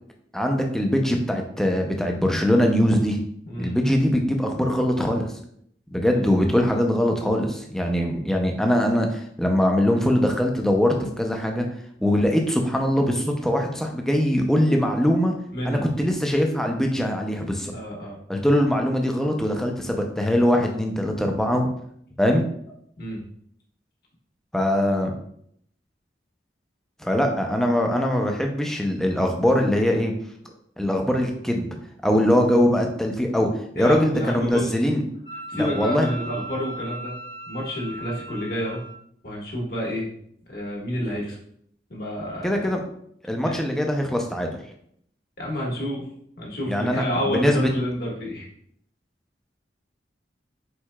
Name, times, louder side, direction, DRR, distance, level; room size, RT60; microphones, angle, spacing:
voice 1, 0.3-3.2 3.6-5.3 5.9-11.7 12.0-15.3 15.7-17.7 18.3-21.7 22.2-22.5 24.5-25.1 27.0-30.1 30.8-31.7 32.0-33.5 33.7-35.0 35.5-36.1 42.4-42.8 43.3-44.5 46.7-47.7, equal, 5° left, 2 dB, 0.5 m, -22 dB
voice 2, 15.5-15.9 17.7-18.2 23.0-23.2 33.8-34.7 35.5-37.1 37.5-38.8 39.2-40.1 40.5-41.4 41.9-42.7 43.4-43.6 45.4-46.1 46.4-48.5, equal, 55° left, -3 dB, 1.4 m, -29 dB
Wind instrument woodwind instrument, 35.2-39.0, right 2 dB, 75° left, 1.6 m, -38 dB
4.6 x 4.3 x 2.2 m, 0.67 s
head